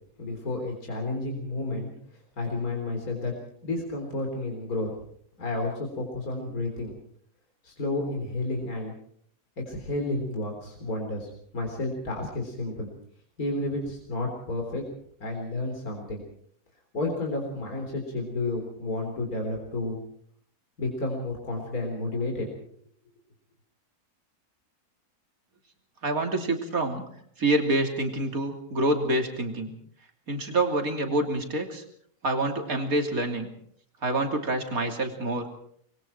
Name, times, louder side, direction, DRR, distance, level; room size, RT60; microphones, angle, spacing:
voice 1, 0.2-1.9 2.4-3.3 3.6-4.9 5.4-6.9 7.6-8.9 9.6-12.9 13.4-14.8 15.2-16.2 16.9-20.0 20.8-22.7, left 2 dB, 65° left, 1 dB, 4.2 m, -31 dB
voice 2, 26.0-27.0 27.4-29.7 30.3-31.8 32.2-33.5 34.0-35.5, right 2 dB, 65° right, 4 dB, 3.4 m, -27 dB
26.5 x 22.0 x 4.5 m, 0.63 s
omnidirectional pair, 1.6 m